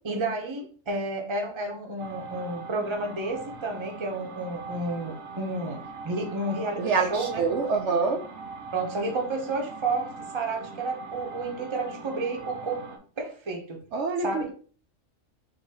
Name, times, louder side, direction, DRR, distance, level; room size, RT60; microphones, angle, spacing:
voice 1, 0.0-7.5 8.7-13.8 14.2-14.5, right 2 dB, 25° right, 2 dB, 0.8 m, -31 dB
sound 1, 2.0-13.0, right 4 dB, 90° right, 1.3 m, -42 dB
voice 2, 6.8-8.2 13.9-14.5, right 4 dB, 70° right, 4 dB, 0.8 m, -26 dB
3.9 x 2.8 x 4.1 m, 0.41 s
omnidirectional pair, 1.3 m